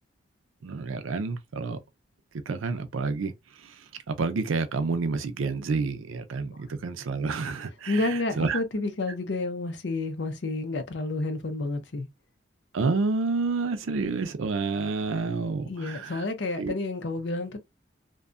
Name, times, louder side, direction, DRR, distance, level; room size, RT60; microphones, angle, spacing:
voice 1, 0.6-1.8 2.5-8.6 12.7-16.2 16.6-16.7, right 4 dB, 90° right, 0.5 m, -29 dB
voice 2, 7.9-12.1 15.6-17.6, left 2 dB, 65° left, 0.6 m, -30 dB
2.6 x 2.2 x 2.4 m
head